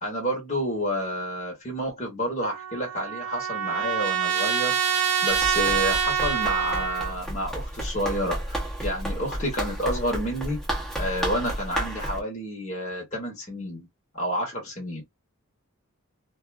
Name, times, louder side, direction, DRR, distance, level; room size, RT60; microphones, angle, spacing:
voice 1, 0.0-10.6 11.0-13.9 14.1-15.0, equal, 35° left, 1.0 m, -30 dB
Trumpet, 2.4-7.1, right 7 dB, 90° right, 0.6 m, -26 dB
Run, 5.3-12.2, right 1 dB, ahead, 0.8 m, -32 dB
2.5 x 2.3 x 2.3 m
head